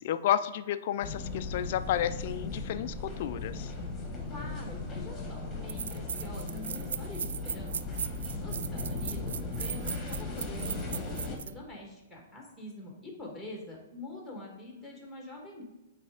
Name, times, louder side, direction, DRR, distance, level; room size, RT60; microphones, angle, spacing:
voice 1, 0.0-3.7, left 11 dB, 50° left, 12 dB, 0.4 m, -31 dB
sound 1, 1.0-11.4, left 3 dB, 15° left, 1.5 m, -37 dB
voice 2, 4.3-7.7 8.4-15.6, left 1 dB, 5° right, -1 dB, 1.6 m, -45 dB
sound 2, 5.1-5.2 5.7-11.5, right 8 dB, 75° right, 0.3 m, -38 dB
8.5 x 3.3 x 4.9 m, 1.1 s
hypercardioid pair, 155°, 0 cm